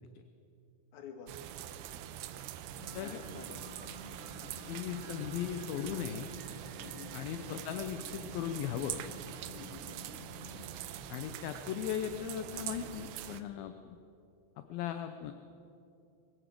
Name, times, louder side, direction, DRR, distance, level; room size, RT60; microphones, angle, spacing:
voice 1, 0.9-1.4 2.9-3.7 4.4-4.7 6.8-7.1 9.5-9.9, left 6 dB, 55° left, 5 dB, 2.7 m, -50 dB
sound 1, 1.3-13.4, right 11 dB, 85° right, 2.8 m, -44 dB
sound 2, 2.7-11.0, left 1 dB, 35° right, 3.8 m, -51 dB
voice 2, 4.7-6.3 7.1-9.0 11.1-14.0 14.7-15.3, left 10 dB, 75° left, 8 dB, 2.4 m, -38 dB
22.0 x 16.0 x 7.7 m, 2.7 s
omnidirectional pair, 4.8 m